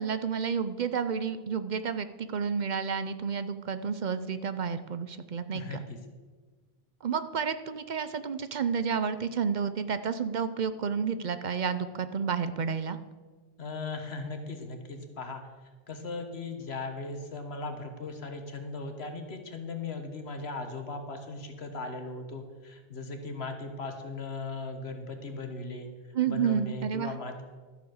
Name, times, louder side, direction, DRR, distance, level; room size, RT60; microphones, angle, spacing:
voice 1, 0.0-5.8 7.0-13.0 26.1-27.1, right 6 dB, 50° right, 11 dB, 0.7 m, -30 dB
voice 2, 5.5-6.0 13.6-15.4 15.9-25.9 26.3-27.4, left 3 dB, 80° left, 5 dB, 1.6 m, -38 dB
12.5 x 7.1 x 6.4 m, 1.4 s
omnidirectional pair, 1.1 m